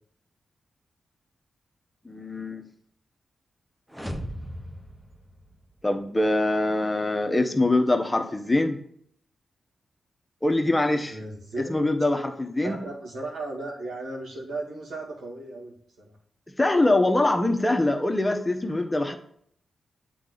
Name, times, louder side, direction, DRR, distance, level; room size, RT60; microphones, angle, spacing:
voice 1, 2.0-2.6 5.8-8.8 10.4-11.2 11.6-12.8 16.6-19.1, left 2 dB, 20° left, 5 dB, 1.0 m, -23 dB
sound 1, 3.9-6.0, equal, 5° right, 1.0 m, -38 dB
voice 2, 11.0-11.9 12.6-16.2, right 2 dB, 85° right, -4 dB, 2.3 m, -36 dB
8.2 x 4.2 x 3.9 m, 0.65 s
supercardioid pair, 50°, 0 cm